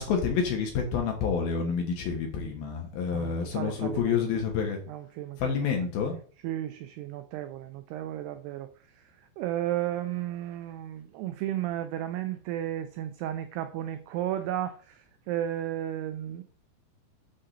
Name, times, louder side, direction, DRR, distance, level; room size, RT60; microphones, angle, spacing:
voice 1, 0.0-4.8 5.4-6.2, left 6 dB, 65° left, 2 dB, 2.6 m, -28 dB
voice 2, 3.1-4.2 4.9-5.8 6.4-8.7 8.9-16.4, right 12 dB, 85° right, 9 dB, 2.3 m, -34 dB
8.8 x 3.7 x 6.6 m, 0.42 s
omnidirectional pair, 5.4 m